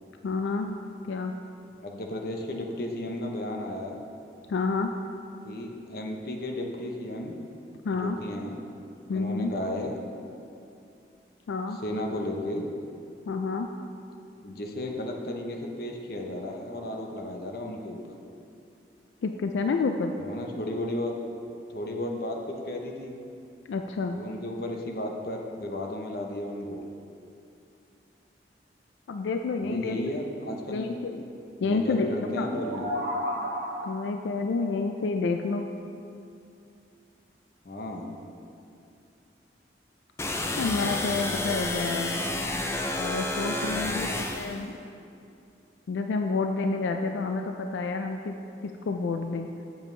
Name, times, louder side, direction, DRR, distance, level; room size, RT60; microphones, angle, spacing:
voice 1, 0.2-0.8 1.0-1.3 4.5-4.9 7.8-8.2 9.1-9.5 11.5-11.8 13.3-13.7 19.2-20.1 23.7-24.2 29.1-30.1 30.7-31.2 31.6-32.5 33.8-35.7 40.6-42.1 43.0-44.7 45.9-48.3 48.6-49.5, left 4 dB, 90° left, 5 dB, 0.3 m, -29 dB
voice 2, 1.8-4.0 5.4-7.4 7.9-8.6 9.1-10.0 11.8-12.6 14.4-18.2 20.2-21.2 21.7-23.2 24.1-26.8 29.6-30.9 31.6-33.1 37.6-38.2 43.7-44.1, left 1 dB, 55° left, 2 dB, 0.7 m, -34 dB
sound 1, 32.3-34.2, equal, 50° right, 1.5 m, -32 dB
sound 2, 40.2-44.6, left 2 dB, 15° left, 0.4 m, -30 dB
7.5 x 7.2 x 3.2 m, 2.5 s
head